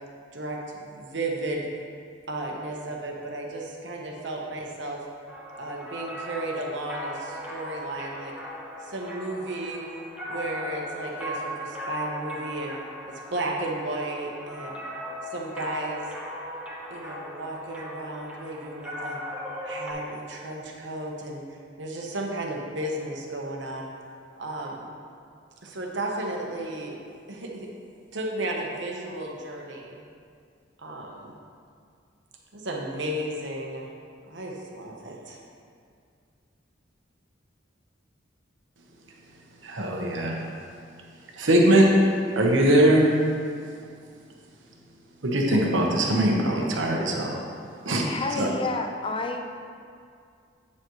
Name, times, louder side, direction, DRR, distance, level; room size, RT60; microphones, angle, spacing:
voice 1, 0.3-1.7 2.3-5.0 5.6-8.3 8.8-9.8 10.3-12.8 13.1-14.8 15.3-16.1 16.9-19.2 19.6-21.4 21.8-23.9 24.3-24.9 25.6-27.0 27.3-27.7 28.1-30.0 30.8-31.3 32.5-33.9 34.3-35.4, right 1 dB, 70° right, -1 dB, 1.1 m, -34 dB
sound 1, 5.3-19.9, equal, 5° right, 0.9 m, -38 dB
voice 2, 39.6-40.4 41.4-41.9 42.3-43.1 45.2-47.4 47.8-48.0 48.4-48.5, right 1 dB, 90° right, -1 dB, 1.1 m, -21 dB
voice 3, 48.1-49.4, left 3 dB, 30° left, 4 dB, 0.5 m, -30 dB
8.4 x 7.1 x 3.1 m, 2.3 s
head